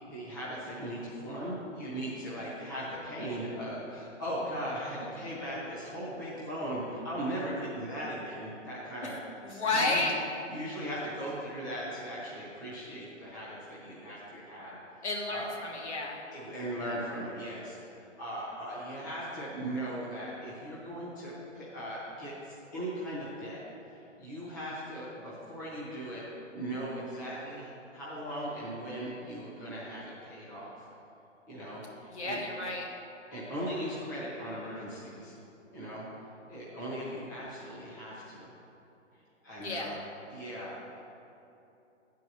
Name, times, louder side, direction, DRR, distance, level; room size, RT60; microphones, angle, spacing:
voice 1, 0.0-9.1 9.5-10.0 10.5-14.8 15.3-15.5 16.3-23.6 24.2-26.2 26.5-30.7 31.5-32.4 33.3-35.4 35.7-36.1 36.5-38.5 39.4-40.0 40.3-40.8, equal, 15° left, -8 dB, 1.0 m, -38 dB
voice 2, 9.4-10.1 15.0-16.2 32.1-32.9 39.6-39.9, left 2 dB, 60° left, -1 dB, 1.6 m, -31 dB
9.6 x 4.7 x 6.8 m, 2.8 s
hypercardioid pair, 180°, 38 cm